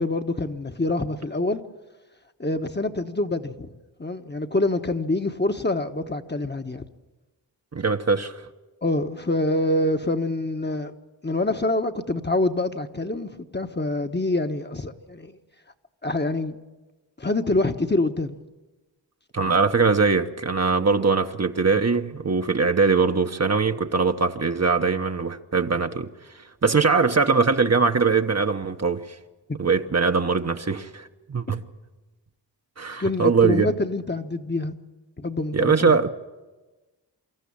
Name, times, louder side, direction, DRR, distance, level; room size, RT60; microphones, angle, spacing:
voice 1, 0.0-1.6 2.4-3.7 4.0-6.8 8.8-10.9 11.2-15.4 16.0-16.6 17.2-18.4 33.0-34.7 35.2-36.0, left 2 dB, 25° left, 1.1 m, -26 dB
voice 2, 7.7-8.4 19.3-26.1 26.6-29.0 29.6-31.6 32.8-33.7 35.5-36.1, right 4 dB, 35° right, 1.0 m, -21 dB
25.0 x 13.5 x 8.6 m
cardioid pair, 45°, 43 cm